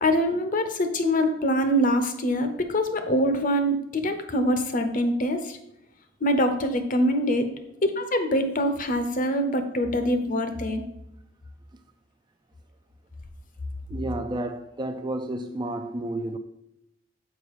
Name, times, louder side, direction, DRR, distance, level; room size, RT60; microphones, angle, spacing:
voice 1, 0.0-5.6 6.2-7.5 7.8-10.8, equal, 40° left, 0.8 m, -24 dB
voice 2, 13.9-16.4, right 1 dB, 25° right, 0.4 m, -31 dB
6.7 x 5.0 x 4.7 m
head